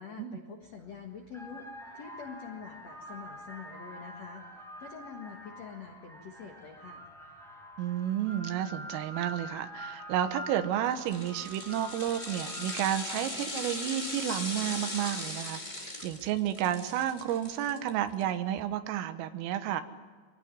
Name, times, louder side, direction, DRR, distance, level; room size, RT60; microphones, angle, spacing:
voice 1, 0.0-1.6 1.9-4.4 4.8-7.0, left 6 dB, 75° left, 3 dB, 1.5 m, -45 dB
sound 1, 0.6-0.8 1.3-13.4, equal, ahead, 5.4 m, -46 dB
voice 2, 7.8-19.8, right 11 dB, 80° right, 9 dB, 3.8 m, -31 dB
sound 2, 10.9-18.2 18.6-18.7, left 1 dB, 55° left, 0.5 m, -39 dB
24.0 x 17.5 x 9.8 m, 1.5 s
omnidirectional pair, 5.9 m